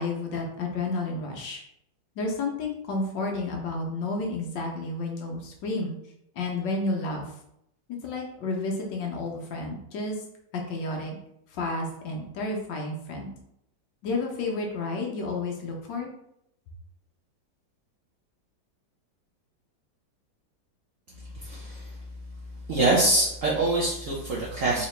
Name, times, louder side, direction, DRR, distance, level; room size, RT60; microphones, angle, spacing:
voice 1, 0.0-1.6 2.2-5.9 6.4-7.3 8.0-10.2 10.5-11.2 11.5-13.3 14.0-16.1, left 2 dB, 70° left, 0 dB, 1.4 m, -31 dB
voice 2, 21.3-21.9 22.7-24.9, right 2 dB, 70° right, -5 dB, 0.7 m, -24 dB
3.9 x 2.9 x 3.2 m, 0.76 s
omnidirectional pair, 2.1 m